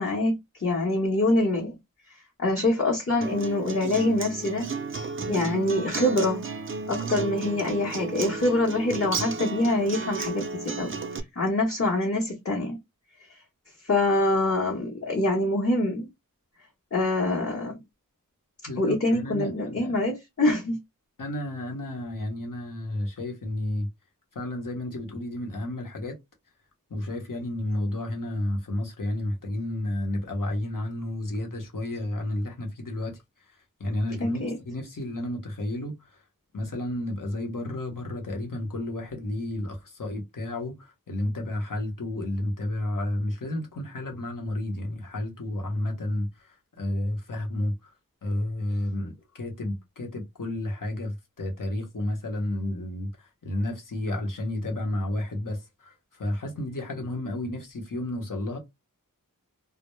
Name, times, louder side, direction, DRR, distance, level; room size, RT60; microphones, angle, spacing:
voice 1, 0.0-1.7 2.4-4.7 5.3-6.4 6.9-10.9 11.4-12.8 13.8-16.1 16.9-17.8 18.8-20.8 34.2-34.6, left 2 dB, 40° left, 0.8 m, -25 dB
Acoustic guitar, 3.2-11.2, right 4 dB, 40° right, 0.4 m, -33 dB
voice 2, 18.7-19.9 21.2-23.9 24.3-26.2 26.9-33.2 33.8-36.1 36.5-47.9 48.2-58.6, left 1 dB, 70° left, 0.9 m, -31 dB
2.2 x 2.1 x 3.0 m
wide cardioid pair, 45°, 34 cm